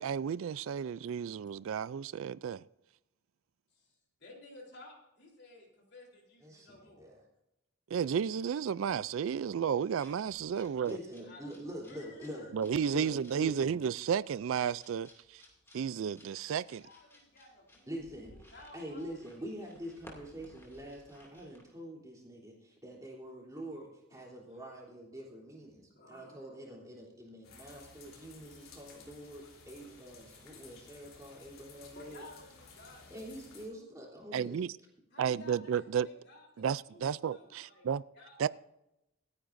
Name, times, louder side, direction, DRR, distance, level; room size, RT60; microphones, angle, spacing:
voice 1, 0.0-2.6 7.9-11.0 12.5-15.4 15.7-16.8 34.3-34.7 35.2-36.1 36.6-38.0 38.4-38.5, right 7 dB, 70° right, 0.3 m, -32 dB
voice 2, 3.7-7.1 10.5-11.6 11.9-12.5 16.6-17.9 18.3-19.7 24.5-24.8 25.9-26.5 31.9-33.3 33.7-34.0 35.1-37.9 38.1-38.4, left 2 dB, 50° left, 3.7 m, -55 dB
voice 3, 6.4-7.2 10.9-12.5 12.9-13.7 17.9-18.3 18.7-32.3 33.1-34.6, equal, 15° right, 3.5 m, -45 dB
sound 1, 9.8-21.7, left 1 dB, 10° left, 2.5 m, -60 dB
sound 2, 27.4-33.7, left 4 dB, 75° left, 3.5 m, -56 dB
26.5 x 9.7 x 2.6 m
head